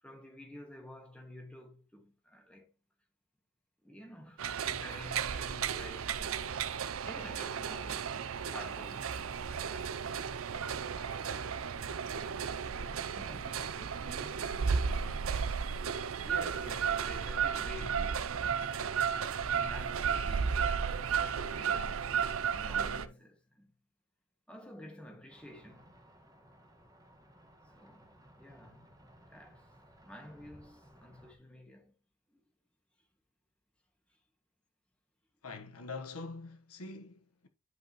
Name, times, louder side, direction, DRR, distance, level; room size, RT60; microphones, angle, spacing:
voice 1, 0.0-2.7 3.8-6.7 7.0-9.1 9.5-10.0 10.7-12.5 13.1-15.3 16.2-18.9 19.4-22.0 22.5-23.7 24.5-26.0 27.7-28.9 29.3-29.7 30.0-31.9 32.3-32.4, equal, 5° left, 1.9 m, -51 dB
sound 1, 4.4-23.1, right 6 dB, 70° right, 0.5 m, -34 dB
sound 2, 10.2-10.4 10.9-11.0 11.2-11.5 11.9-12.2 12.6-14.3 14.6-16.1 16.6-18.7 19.1-19.2 19.4-21.6, right 1 dB, 40° right, 2.2 m, -57 dB
sound 3, 25.3-31.3, equal, 15° right, 1.6 m, -59 dB
voice 2, 35.4-37.5, left 3 dB, 90° left, 1.3 m, -44 dB
11.0 x 5.2 x 3.0 m
head